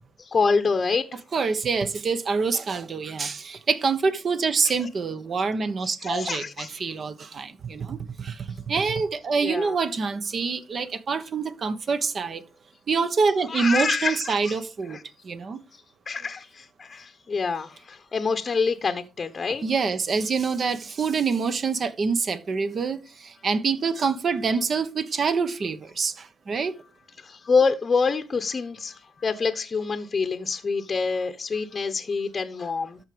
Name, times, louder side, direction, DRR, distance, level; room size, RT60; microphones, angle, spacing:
voice 1, 0.2-1.2 4.7-4.8 6.0-6.7 9.4-9.8 13.5-14.6 14.9-15.0 16.1-19.6 27.2-33.0, left 4 dB, 35° left, 0.9 m, -26 dB
voice 2, 1.3-12.4 12.9-15.0 15.2-15.6 19.6-26.7, right 5 dB, 45° right, 1.2 m, -26 dB
13.0 x 4.7 x 5.1 m
cardioid pair, 90°, 0 cm